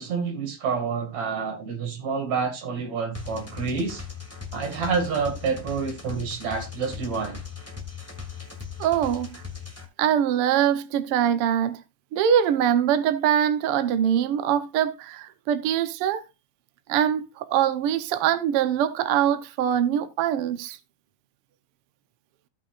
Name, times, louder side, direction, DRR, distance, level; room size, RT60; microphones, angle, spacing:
voice 1, 0.0-4.0 4.5-7.4, right 5 dB, 60° right, 3.4 m, -28 dB
sound 1, 3.1-9.8, left 6 dB, 5° left, 1.6 m, -39 dB
voice 2, 8.8-9.4 10.0-11.8 12.1-16.2 16.9-20.8, right 9 dB, 75° right, 1.3 m, -23 dB
16.5 x 6.0 x 2.5 m
omnidirectional pair, 3.7 m